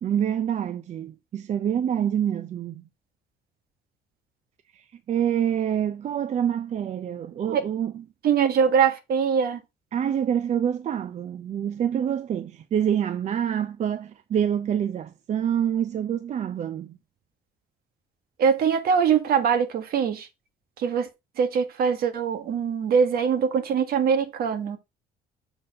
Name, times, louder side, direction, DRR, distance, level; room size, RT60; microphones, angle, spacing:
voice 1, 0.0-2.8 4.7-8.0 9.9-17.0, right 9 dB, 45° right, 0.5 m, -26 dB
voice 2, 8.2-9.6 18.4-20.3 20.8-21.1 21.4-24.8, right 7 dB, 65° right, 1.6 m, -22 dB
7.0 x 4.1 x 5.3 m
cardioid pair, 110°, 17 cm